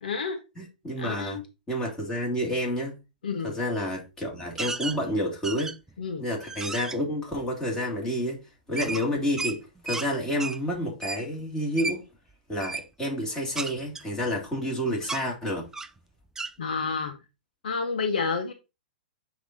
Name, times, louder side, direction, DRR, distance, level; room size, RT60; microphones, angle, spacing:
voice 1, 0.0-0.4 1.0-1.4 3.2-3.5 6.0-6.2 16.6-17.2 17.6-18.5, left 5 dB, 70° left, 1.3 m, -29 dB
voice 2, 0.5-1.4 1.7-3.0 3.4-5.7 6.2-12.0 12.5-15.7, equal, 10° left, 3.4 m, -29 dB
sound 1, 4.6-5.0 5.4-5.9 6.4-7.0 8.8-10.1 10.4-10.6 11.0-11.2 11.8-12.0 12.6-12.9 13.6-14.7 15.0-15.2 15.7-16.0 16.4-16.5, right 4 dB, 10° right, 0.4 m, -33 dB
9.6 x 3.2 x 4.1 m
hypercardioid pair, 120°, 5 cm